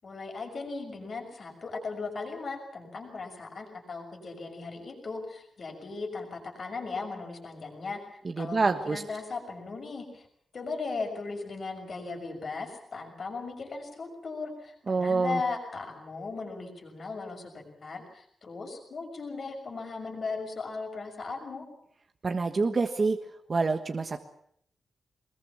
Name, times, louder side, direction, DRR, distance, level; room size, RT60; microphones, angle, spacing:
voice 1, 0.0-10.3 10.5-21.6, left 4 dB, 45° left, 3 dB, 6.2 m, -37 dB
voice 2, 8.4-9.0 14.9-15.4 22.2-23.2 23.5-24.2, right 4 dB, 30° right, 6 dB, 1.3 m, -26 dB
23.5 x 21.0 x 7.3 m, 0.68 s
wide cardioid pair, 175°, 0 cm